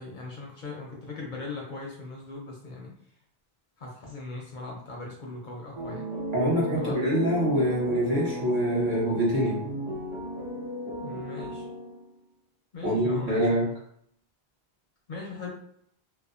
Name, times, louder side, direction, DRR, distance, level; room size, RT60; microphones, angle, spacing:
voice 1, 0.0-2.9 3.8-6.1 6.7-7.1 11.0-11.7 12.7-13.6 15.1-15.5, left 3 dB, 60° left, -1 dB, 0.6 m, -39 dB
sound 1, 5.7-12.2, equal, 5° right, 0.5 m, -34 dB
voice 2, 6.3-9.6 12.8-13.7, equal, 55° right, -6 dB, 1.0 m, -25 dB
2.6 x 2.1 x 2.4 m, 0.68 s
omnidirectional pair, 1.0 m